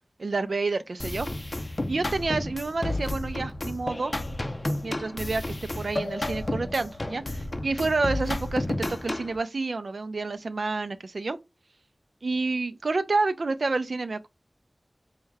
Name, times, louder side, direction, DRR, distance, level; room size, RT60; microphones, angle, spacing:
voice 1, 0.2-1.3 1.9-4.1 4.8-11.4 12.2-14.3, right 3 dB, 85° right, 0.4 m, -29 dB
sound 1, 1.0-9.4, left 1 dB, 45° left, 0.5 m, -32 dB
4.6 x 2.1 x 3.3 m
wide cardioid pair, 50°, 0 cm